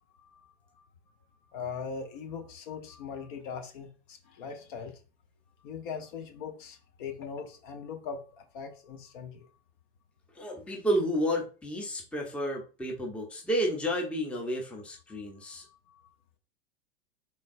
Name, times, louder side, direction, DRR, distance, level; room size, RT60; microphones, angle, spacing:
voice 1, 1.5-5.0 5.6-9.5 15.1-16.0, left 6 dB, 50° left, 5 dB, 0.8 m, -41 dB
voice 2, 10.3-15.6, equal, 5° left, 0 dB, 0.6 m, -31 dB
3.8 x 3.4 x 2.5 m, 0.35 s
figure-of-eight pair, 95°, 33 cm